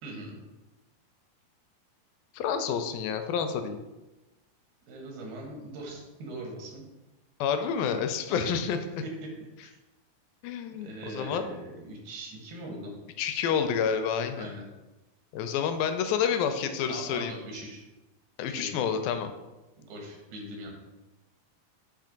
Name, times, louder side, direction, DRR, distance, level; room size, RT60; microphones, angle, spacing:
voice 1, 0.0-0.4 4.9-6.8 8.3-8.5 9.6-9.7 10.8-12.9 14.4-14.6 16.9-17.8 18.5-18.7 19.8-20.7, right 1 dB, 85° right, 0 dB, 3.4 m, -41 dB
voice 2, 2.3-3.8 7.4-9.0 10.4-11.4 13.2-14.5 15.3-17.3 18.4-19.3, left 7 dB, 80° left, 7 dB, 2.2 m, -29 dB
7.6 x 3.0 x 5.1 m, 1.1 s
omnidirectional pair, 4.4 m